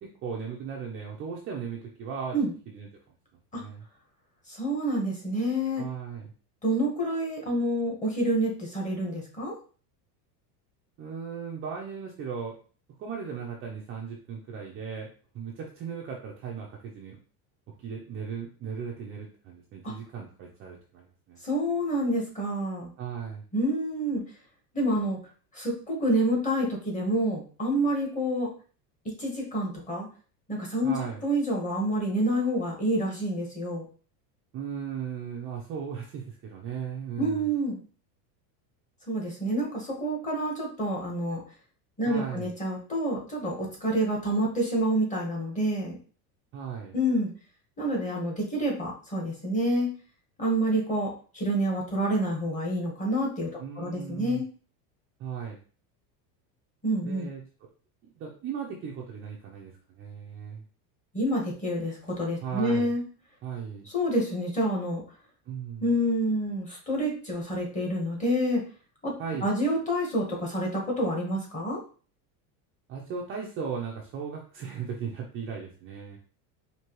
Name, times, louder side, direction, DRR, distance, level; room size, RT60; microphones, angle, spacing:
voice 1, 0.0-2.3 2.7-2.9 3.5-3.8 5.8-6.3 11.0-12.5 13.0-15.1 15.3-17.2 17.8-21.4 23.0-23.4 30.8-31.2 34.5-37.5 42.1-42.5 46.5-46.9 53.6-54.4 55.2-55.6 57.0-57.5 58.0-60.6 62.4-62.9 63.4-63.9 65.5-65.9 69.2-69.5 72.9-76.2, right 6 dB, 30° right, -1 dB, 0.5 m, -37 dB
voice 2, 4.5-5.8 6.6-9.5 19.8-19.9 21.4-22.9 23.5-24.2 24.7-25.2 25.5-28.5 29.0-30.1 30.5-31.0 31.2-33.9 37.2-37.8 39.1-41.4 42.0-46.0 46.9-47.3 47.8-49.9 50.4-53.5 53.8-54.4 56.8-57.3 61.1-63.0 63.9-65.0 65.8-68.6 69.0-71.8, right 1 dB, 15° left, -1 dB, 1.3 m, -28 dB
4.6 x 2.8 x 3.0 m, 0.40 s
supercardioid pair, 145°, 47 cm